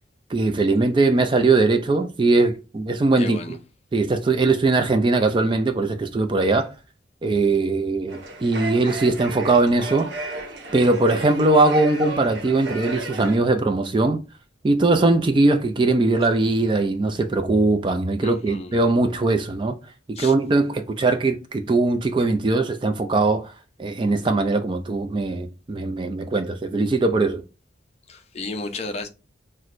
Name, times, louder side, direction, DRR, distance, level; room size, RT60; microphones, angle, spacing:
voice 1, 0.3-3.4 3.9-6.7 7.2-10.3 10.7-14.2 14.6-19.7 20.1-23.5 23.8-27.4, right 3 dB, 25° right, 0.3 m, -20 dB
voice 2, 3.2-3.6 18.2-18.8 20.1-20.3 28.1-29.1, left 3 dB, 35° left, 0.5 m, -33 dB
sound 1, 8.1-13.4, right 2 dB, 70° right, 0.9 m, -33 dB
5.8 x 2.1 x 2.5 m
head